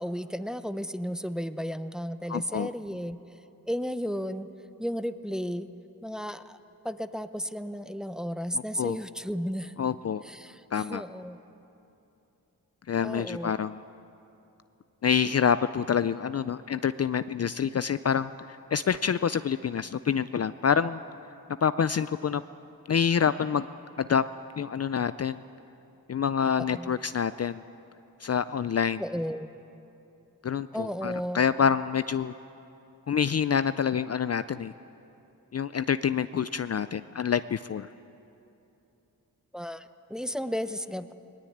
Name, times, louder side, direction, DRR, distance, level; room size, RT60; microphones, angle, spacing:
voice 1, 0.0-3.2 3.7-4.5 4.8-5.7 6.0-6.6 6.8-9.7 10.2-11.4 13.0-13.5 26.7-26.9 29.0-29.5 30.7-31.4 39.5-41.1, equal, ahead, 11 dB, 0.7 m, -33 dB
voice 2, 2.3-2.7 8.5-9.0 9.8-10.2 10.7-11.0 12.9-13.8 15.0-21.0 21.6-22.4 22.9-23.7 24.0-24.2 24.6-25.4 26.1-27.6 28.2-29.0 30.4-32.3 33.1-34.7 35.5-37.9, left 7 dB, 45° left, 13 dB, 0.4 m, -27 dB
20.5 x 19.0 x 8.7 m, 2.9 s
cardioid pair, 70°, 37 cm